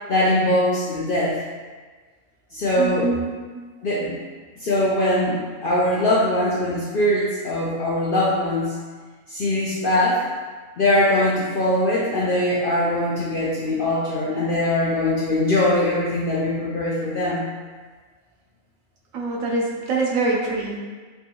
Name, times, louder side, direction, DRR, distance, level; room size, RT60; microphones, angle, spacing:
voice 1, 0.1-1.4 2.5-3.1 3.8-4.2 4.6-5.4 5.6-8.7 9.3-10.2 10.8-17.4, left 1 dB, 60° left, -7 dB, 0.6 m, -21 dB
voice 2, 2.8-3.7 19.1-20.8, right 3 dB, 75° right, -2 dB, 1.0 m, -25 dB
3.3 x 2.6 x 2.8 m, 1.4 s
omnidirectional pair, 1.4 m